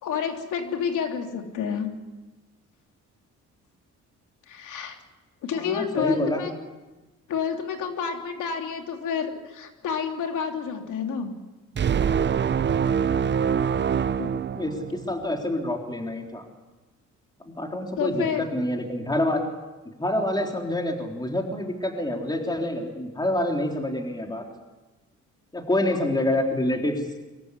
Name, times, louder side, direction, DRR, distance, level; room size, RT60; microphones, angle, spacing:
voice 1, 0.0-1.9 4.5-5.0 5.4-6.5 7.3-11.4 13.1-13.2 14.2-14.3 18.0-18.4 25.9-26.0, left 7 dB, 80° left, 4 dB, 3.2 m, -29 dB
voice 2, 5.5-6.4 14.5-16.4 17.4-19.4 20.0-24.4 25.5-26.9, left 1 dB, 15° left, 2 dB, 3.7 m, -27 dB
sound 1, 11.8-15.2, right 7 dB, 35° right, 0.7 m, -24 dB
24.5 x 14.0 x 9.8 m, 1.1 s
cardioid pair, 90°, 30 cm